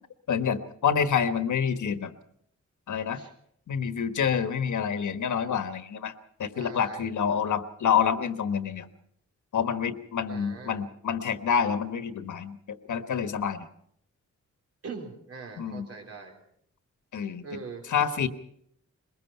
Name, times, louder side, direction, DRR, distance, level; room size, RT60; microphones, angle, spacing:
voice 1, 0.3-2.1 2.9-3.2 3.7-6.1 6.4-8.9 9.5-13.7 15.6-15.9 17.1-17.6 17.9-18.3, left 7 dB, 90° left, 10 dB, 1.3 m, -27 dB
voice 2, 6.5-7.1 10.3-10.8 14.8-16.4 17.4-17.9, right 4 dB, 55° right, 2 dB, 3.9 m, -42 dB
22.5 x 21.0 x 5.7 m, 0.69 s
wide cardioid pair, 160°, 29 cm